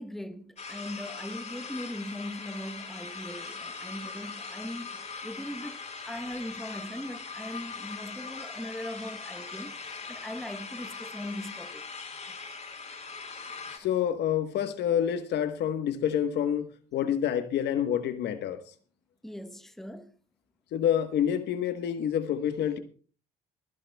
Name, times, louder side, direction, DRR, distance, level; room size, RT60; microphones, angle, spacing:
voice 1, 0.0-4.9 5.2-5.8 6.1-11.8 19.2-20.1, left 1 dB, ahead, 1.0 m, -39 dB
sound 1, 0.6-13.8, left 4 dB, 40° left, 4.5 m, -41 dB
voice 2, 13.8-18.6 20.7-22.8, left 9 dB, 70° left, 1.3 m, -28 dB
28.0 x 10.5 x 2.3 m
supercardioid pair, 70°, 18 cm